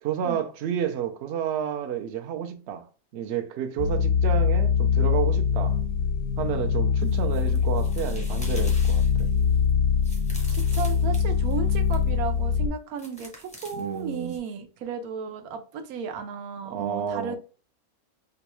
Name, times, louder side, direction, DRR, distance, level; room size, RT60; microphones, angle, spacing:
voice 1, 0.0-2.9 3.1-5.8 6.4-9.3 13.8-14.4 16.7-17.4, right 9 dB, 65° right, 0.7 m, -30 dB
sound 1, 3.8-12.7, left 6 dB, 80° left, 1.0 m, -23 dB
sound 2, 7.0-12.1 13.0-14.4, equal, 10° left, 0.5 m, -46 dB
voice 2, 10.5-17.4, right 6 dB, 90° right, 1.1 m, -34 dB
3.9 x 2.2 x 3.0 m
omnidirectional pair, 1.5 m